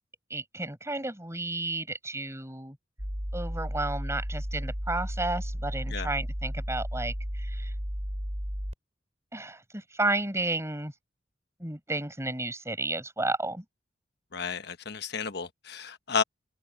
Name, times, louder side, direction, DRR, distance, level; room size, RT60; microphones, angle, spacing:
voice 1, 0.3-2.8 3.3-7.7 9.3-10.9 11.6-13.6, right 2 dB, 15° right, 5.7 m, -32 dB
sound 1, 3.0-8.7, equal, 35° right, 7.0 m, -33 dB
voice 2, 14.3-16.2, left 6 dB, 60° left, 1.2 m, -32 dB
head